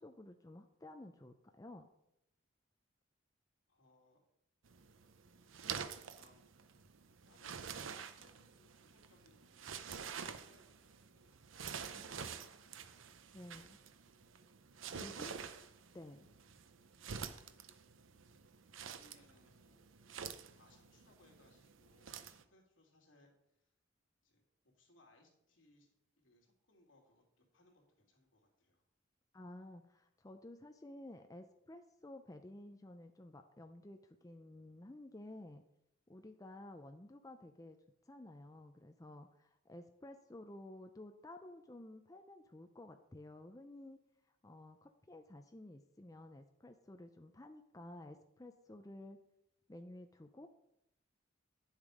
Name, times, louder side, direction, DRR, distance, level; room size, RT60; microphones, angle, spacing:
voice 1, 0.0-1.9 11.9-12.5 13.3-13.8 14.9-15.4 15.9-16.3 29.3-35.7 36.1-37.8 38.1-44.0 44.4-49.2 49.7-50.5, left 1 dB, 20° left, 6 dB, 0.6 m, -53 dB
voice 2, 3.7-4.2 5.3-5.6 5.9-6.5 7.3-13.0 14.9-15.5 18.8-19.9 20.5-23.7 24.2-25.9 26.2-28.8, left 2 dB, 75° left, 0 dB, 2.8 m, -69 dB
sound 1, 4.6-22.4, right 7 dB, 80° right, 0.7 m, -48 dB
10.0 x 7.3 x 5.0 m, 0.79 s
head